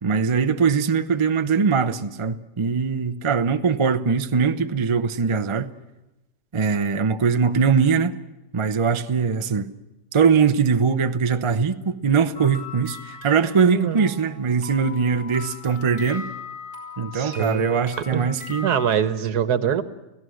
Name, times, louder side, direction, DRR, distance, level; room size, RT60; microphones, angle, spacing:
voice 1, 0.0-5.7 6.5-8.2 8.5-9.7 10.1-16.3 17.0-18.7, right 6 dB, 50° right, 0.3 m, -21 dB
sound 1, 12.3-18.9, left 4 dB, 30° left, 5.9 m, -39 dB
voice 2, 13.7-14.1 17.1-17.7 18.1-18.2 18.6-19.8, right 8 dB, 70° right, 1.5 m, -23 dB
30.0 x 16.5 x 6.4 m
omnidirectional pair, 1.8 m